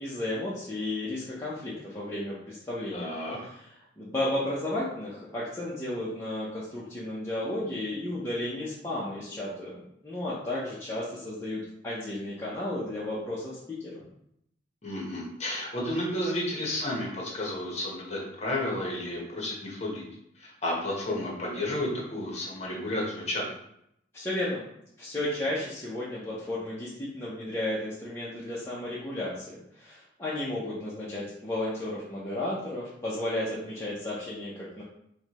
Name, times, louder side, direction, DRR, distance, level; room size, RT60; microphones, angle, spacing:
voice 1, 0.0-3.1 3.4-14.0 24.1-24.6 25.0-34.8, left 1 dB, 15° left, -8 dB, 0.6 m, -33 dB
voice 2, 2.9-3.4 14.8-20.0 20.4-23.4, left 1 dB, 35° left, -3 dB, 1.0 m, -32 dB
4.5 x 2.2 x 2.9 m, 0.76 s
head